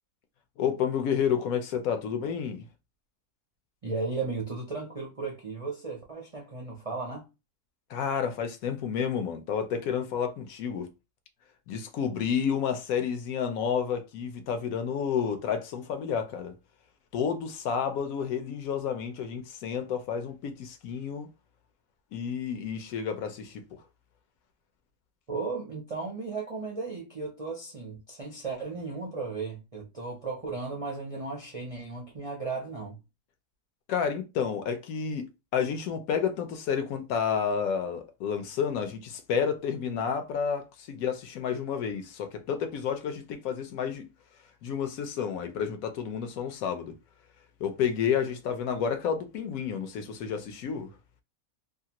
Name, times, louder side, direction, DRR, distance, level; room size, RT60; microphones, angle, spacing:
voice 1, 0.6-2.6 7.9-10.9 11.7-16.5 17.1-21.3 22.1-23.6 33.9-44.0 44.6-46.9 47.6-50.9, left 7 dB, 70° left, 1.0 m, -30 dB
voice 2, 3.8-7.3 25.3-33.0, right 4 dB, 55° right, 0.3 m, -35 dB
2.7 x 2.4 x 2.8 m
omnidirectional pair, 1.6 m